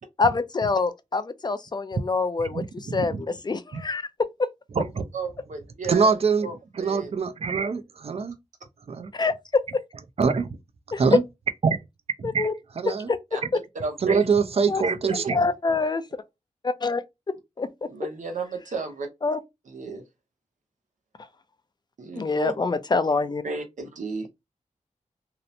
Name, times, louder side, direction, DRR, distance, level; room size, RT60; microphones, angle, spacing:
voice 1, 0.2-4.5 9.1-9.6 10.9-11.0 12.2-12.5 12.9-13.6 14.7-14.8 15.1-16.0 16.6-17.0 17.6-17.9 19.2-19.4 22.1-23.4, left 4 dB, 35° left, 0.4 m, -26 dB
voice 2, 2.9-3.2 3.7-3.8 4.8-5.1 5.8-8.4 8.9-9.1 10.2-10.5 11.0-11.2 11.6-11.8 12.2-12.5 12.8-13.1 14.0-15.4, right 5 dB, 50° right, 0.4 m, -24 dB
voice 3, 5.1-6.1 6.4-7.1 13.3-13.4 13.8-14.2 15.0-15.3 17.9-19.1 19.7-20.0 22.0-22.5 23.4-24.3, right 3 dB, 90° right, 0.8 m, -33 dB
2.9 x 2.1 x 2.5 m
wide cardioid pair, 85°, 13 cm